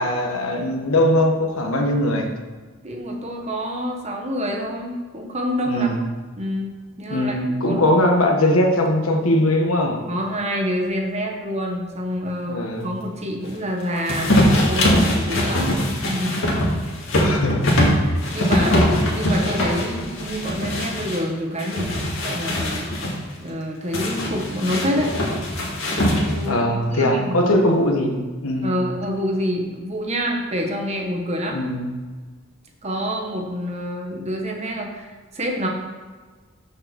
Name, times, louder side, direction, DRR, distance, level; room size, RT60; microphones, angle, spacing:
voice 1, 0.0-2.3 5.7-6.0 7.1-10.0 12.5-12.9 17.2-17.6 26.5-28.1 28.4-28.7 31.5-31.9, left 1 dB, 85° left, 2 dB, 1.3 m, -20 dB
voice 2, 2.8-5.9 6.4-7.4 7.6-7.8 10.1-14.4 14.6-15.8 16.1-16.8 17.8-22.8 23.4-25.1 26.1-26.6 26.9-27.4 28.6-31.6 32.8-35.7, equal, 30° right, 1 dB, 1.2 m, -27 dB
sound 1, 14.1-21.2 21.6-23.1 23.9-26.5, left 1 dB, 65° left, 2.0 m, -21 dB
6.8 x 5.3 x 6.8 m, 1.4 s
head